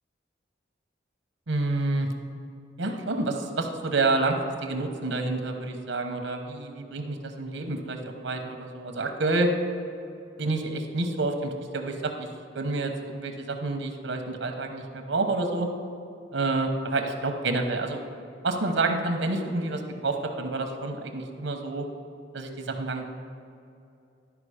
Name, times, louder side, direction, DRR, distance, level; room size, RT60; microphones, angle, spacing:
voice 1, 1.5-2.1 2.8-9.5 10.4-12.3 12.5-15.7 16.3-18.0 18.4-21.9 22.3-23.1, right 2 dB, 85° right, 5 dB, 1.0 m, -28 dB
11.5 x 4.9 x 5.0 m, 2.6 s
head